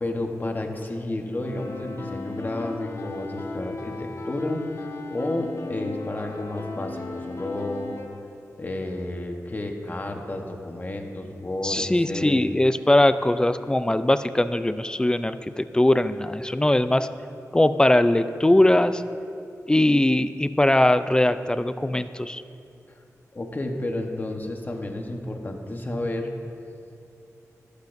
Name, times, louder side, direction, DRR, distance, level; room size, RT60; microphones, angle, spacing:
voice 1, 0.0-7.9 8.6-12.4 23.3-26.3, left 1 dB, 30° left, 3 dB, 1.1 m, -31 dB
sound 1, 1.4-8.1, left 3 dB, 55° left, 1.1 m, -36 dB
voice 2, 11.6-17.1 17.5-19.0 19.7-22.4, left 1 dB, 15° left, 11 dB, 0.4 m, -21 dB
23.5 x 8.2 x 2.6 m, 2.6 s
wide cardioid pair, 95°, 6 cm